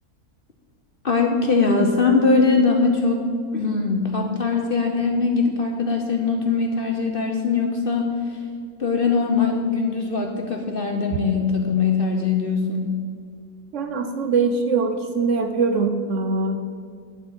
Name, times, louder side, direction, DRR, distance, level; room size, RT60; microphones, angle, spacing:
voice 1, 1.0-3.3 3.5-8.4 8.8-13.0, left 4 dB, 50° left, 2 dB, 0.8 m, -21 dB
voice 2, 13.7-16.6, right 4 dB, 60° right, 6 dB, 0.9 m, -22 dB
11.0 x 4.4 x 7.9 m, 2.1 s
omnidirectional pair, 1.6 m